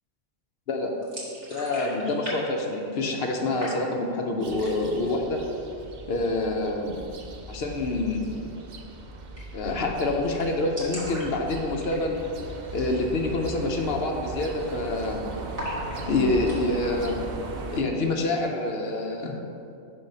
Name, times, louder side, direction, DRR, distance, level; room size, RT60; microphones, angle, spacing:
sound 1, 1.0-2.4 2.6-3.3 3.6-4.2 4.5-5.0 5.4-5.5 5.8-6.4 8.1-8.3 8.6-8.7 8.9-9.0 9.4-9.7 10.0-10.1 10.2-12.3 12.7-12.9 13.3-13.4 13.9-14.2 14.4-15.1 15.5-16.6, equal, 30° right, 1.4 m, -39 dB
voice 1, 1.5-5.4 6.1-7.0 7.5-8.4 9.5-12.2 12.7-15.2 16.1-17.2 17.7-19.4, left 2 dB, 60° left, 2 dB, 0.8 m, -27 dB
sound 2, 4.4-17.8, right 2 dB, 55° right, 0.5 m, -38 dB
5.6 x 3.6 x 5.4 m, 2.7 s
omnidirectional pair, 1.3 m